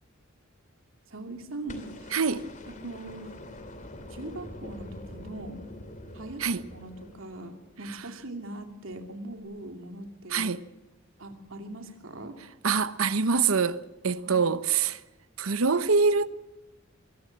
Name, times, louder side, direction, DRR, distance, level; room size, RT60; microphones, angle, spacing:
voice 1, 1.1-2.1 2.7-3.3 4.1-5.6 6.1-10.5 11.2-12.4 14.2-14.5, right 2 dB, 70° right, 2.9 m, -41 dB
sound 1, 1.7-7.9 9.4-9.5, left 1 dB, 40° left, 2.7 m, -45 dB
voice 2, 2.1-2.5 6.4-6.6 10.3-10.6 12.6-15.0 15.4-16.3, right 5 dB, 90° right, 0.9 m, -25 dB
23.0 x 17.5 x 7.5 m
head